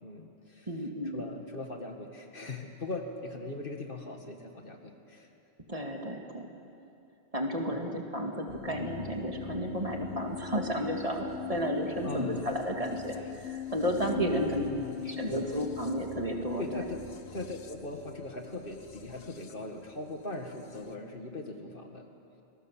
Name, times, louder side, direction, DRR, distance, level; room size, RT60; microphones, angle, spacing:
voice 1, 0.0-0.7 1.1-5.3 7.7-7.9 12.0-12.5 14.2-15.6 16.6-17.0 17.3-22.0, left 2 dB, 55° left, 3 dB, 2.1 m, -40 dB
voice 2, 0.7-1.2 5.7-6.5 7.3-14.6 15.1-16.9, equal, 35° right, 2 dB, 2.1 m, -32 dB
sound 1, 8.5-20.9, left 8 dB, 80° left, 1.4 m, -42 dB
27.0 x 20.0 x 7.5 m, 2.7 s
omnidirectional pair, 1.1 m